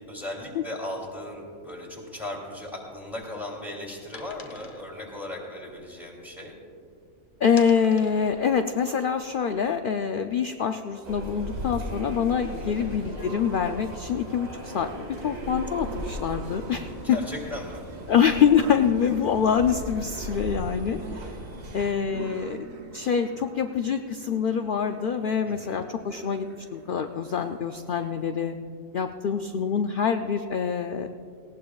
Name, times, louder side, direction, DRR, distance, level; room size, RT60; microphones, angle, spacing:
voice 1, 0.0-6.5 12.6-13.0 17.0-17.8 25.4-25.9, left 1 dB, ahead, -2 dB, 2.6 m, -37 dB
sound 1, 2.9-6.9 7.2-9.9, left 4 dB, 40° left, 1.0 m, -49 dB
voice 2, 7.4-14.9 15.2-16.9 18.1-21.3 21.7-26.5 26.7-28.6 28.9-31.1, left 7 dB, 65° left, 6 dB, 0.5 m, -25 dB
sound 2, 11.0-21.9, right 1 dB, 70° right, 2.2 m, -37 dB
sound 3, 14.7-28.2, right 5 dB, 50° right, 0.9 m, -46 dB
19.0 x 17.5 x 2.4 m, 2.3 s
omnidirectional pair, 1.4 m